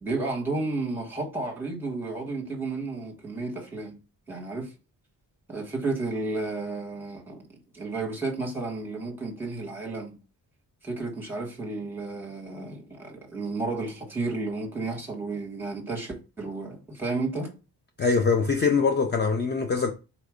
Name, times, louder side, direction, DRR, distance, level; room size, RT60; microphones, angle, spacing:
voice 1, 0.0-4.0 4.3-4.7 5.5-10.2 10.8-17.5, right 3 dB, 5° right, 1.3 m, -32 dB
voice 2, 18.0-19.9, left 5 dB, 30° left, 0.4 m, -23 dB
4.2 x 2.6 x 4.8 m
wide cardioid pair, 155°, 37 cm